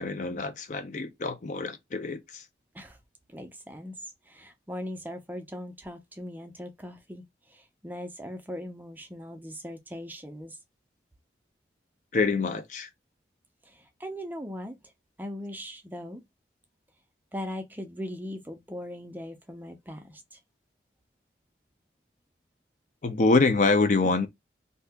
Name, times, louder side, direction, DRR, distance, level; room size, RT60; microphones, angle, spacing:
voice 1, 0.0-2.4 12.1-12.9 23.0-24.3, left 3 dB, 45° left, 0.4 m, -25 dB
voice 2, 3.3-4.0 4.3-7.2 7.5-10.6 13.7-14.7 15.2-16.2 17.3-20.2, equal, 10° right, 0.5 m, -39 dB
2.7 x 2.3 x 3.5 m
head